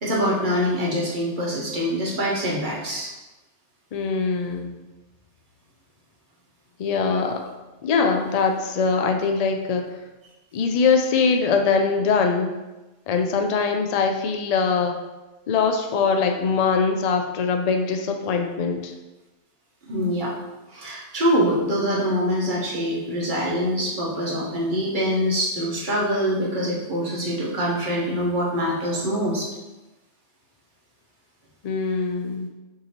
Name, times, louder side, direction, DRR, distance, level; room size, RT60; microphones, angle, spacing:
voice 1, 0.0-3.1 19.9-20.3 20.7-29.5, equal, 45° right, -4 dB, 1.2 m, -24 dB
voice 2, 3.9-4.8 6.8-7.5 7.8-9.8 10.5-12.5 13.1-15.0 15.5-18.9 31.6-32.5, left 5 dB, 85° left, 5 dB, 0.3 m, -22 dB
6.3 x 2.8 x 2.9 m, 1.1 s
omnidirectional pair, 1.2 m